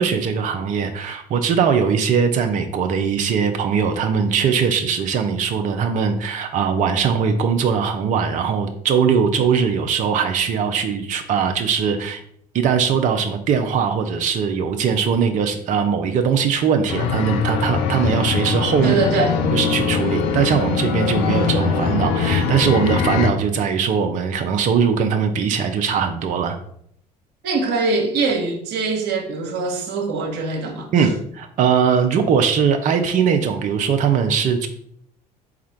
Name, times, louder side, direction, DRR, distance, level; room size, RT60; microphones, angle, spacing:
voice 1, 0.0-12.2 12.5-18.9 19.5-26.6 30.9-34.7, right 6 dB, 35° right, 0.5 m, -20 dB
sound 1, 16.9-23.3, left 5 dB, 55° left, 0.6 m, -22 dB
voice 2, 18.8-19.3 27.4-31.1, right 3 dB, 50° right, 1.0 m, -23 dB
4.1 x 2.4 x 4.4 m
figure-of-eight pair, 60°, 21 cm